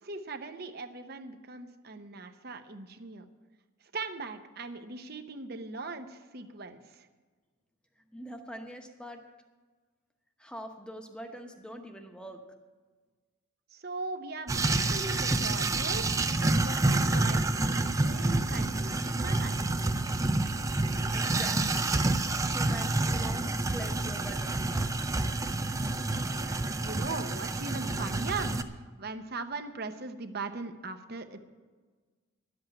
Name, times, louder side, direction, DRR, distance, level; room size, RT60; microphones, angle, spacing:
voice 1, 0.0-3.2 3.9-7.1 13.7-19.7 26.3-31.4, right 3 dB, 50° right, 8 dB, 0.8 m, -40 dB
voice 2, 8.1-9.2 10.4-12.4 21.1-21.9 22.5-25.0, equal, 5° left, 4 dB, 1.0 m, -44 dB
sound 1, 14.5-28.6, right 2 dB, 15° right, 0.4 m, -28 dB
11.5 x 7.9 x 8.8 m, 1.4 s
head